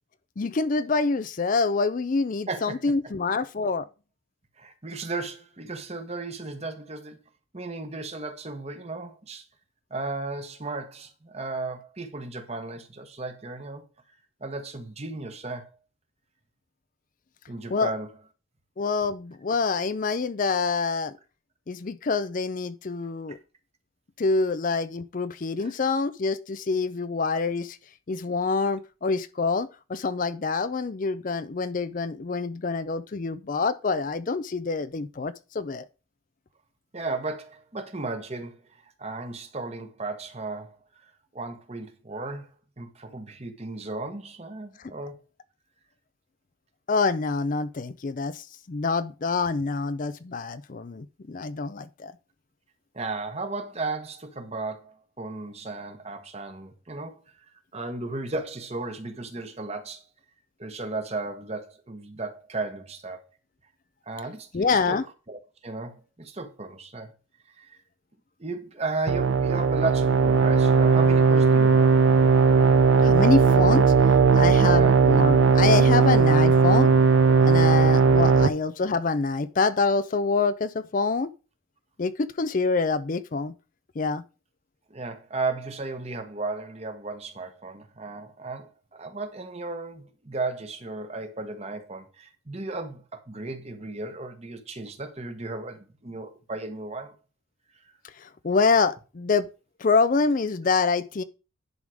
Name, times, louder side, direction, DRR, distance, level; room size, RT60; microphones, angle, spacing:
voice 1, 0.4-3.9 17.7-17.9 18.8-21.1 21.7-23.4 24.2-27.8 28.1-35.8 44.8-44.9 46.9-52.1 64.5-65.0 73.0-76.9 77.5-81.3 82.0-83.5 84.0-84.2 98.2-99.5 99.8-101.2, left 4 dB, 40° left, 0.4 m, -26 dB
voice 2, 2.5-2.8 4.6-7.2 7.5-9.5 9.9-13.8 14.4-15.7 17.5-18.1 23.3-23.4 25.6-25.7 36.9-38.6 39.0-40.7 41.3-42.5 42.8-45.2 52.9-57.2 57.7-60.0 60.6-63.2 64.1-65.0 65.3-67.1 67.6-67.8 68.4-71.9 74.7-75.0 78.3-78.5 84.9-97.1, right 3 dB, 30° right, 1.1 m, -35 dB
sound 1, 69.1-78.5, right 5 dB, 65° right, 0.6 m, -18 dB
10.5 x 3.7 x 6.2 m
head